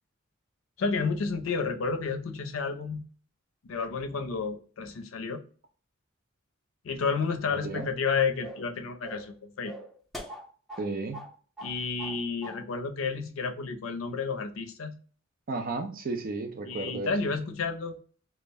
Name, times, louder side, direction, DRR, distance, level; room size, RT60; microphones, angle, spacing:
voice 1, 0.8-3.0 3.6-5.4 6.8-9.7 11.6-15.0 16.7-18.0, left 5 dB, 75° left, 0.5 m, -31 dB
voice 2, 7.5-7.9 10.8-11.2 15.5-17.1, right 3 dB, 45° right, 0.4 m, -33 dB
sound 1, 7.7-8.0 8.4-8.7 9.0-9.3 9.6-10.9 11.1-11.3 11.6-12.2 12.4-12.6, equal, ahead, 0.6 m, -42 dB
2.3 x 2.0 x 3.3 m
head